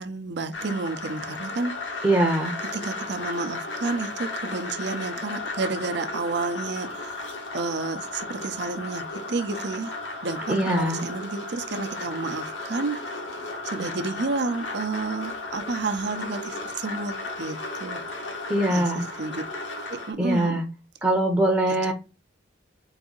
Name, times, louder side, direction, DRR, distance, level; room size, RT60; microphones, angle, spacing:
voice 1, 0.0-1.7 2.7-9.9 10.2-13.0 13.6-18.0 18.7-19.4 19.9-20.7 21.9-22.0, right 3 dB, 65° right, 0.6 m, -31 dB
sound 1, 0.5-20.1, left 2 dB, 75° left, 1.2 m, -35 dB
voice 2, 2.0-2.6 10.5-11.0 18.5-19.0 20.2-20.6 21.0-21.9, right 1 dB, 15° right, 0.7 m, -22 dB
4.0 x 2.6 x 3.8 m
head